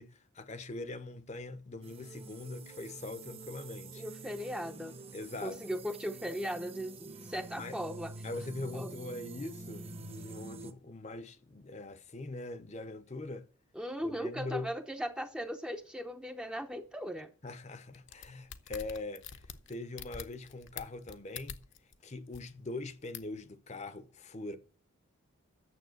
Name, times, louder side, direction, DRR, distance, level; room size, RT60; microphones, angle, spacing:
voice 1, 0.0-4.0 5.1-5.6 7.6-7.8 8.2-13.4 14.0-14.7 17.4-19.4 19.7-21.6 22.0-24.6, left 2 dB, 30° left, 0.8 m, -42 dB
sound 1, 1.8-10.7, right 3 dB, 30° right, 0.9 m, -47 dB
voice 2, 4.0-4.9 5.4-8.1 8.7-8.9 13.7-17.3, equal, 5° right, 0.7 m, -38 dB
sound 2, 17.9-22.0 22.3-22.4 23.1-23.4, left 7 dB, 60° left, 0.9 m, -45 dB
9.4 x 7.1 x 7.9 m
head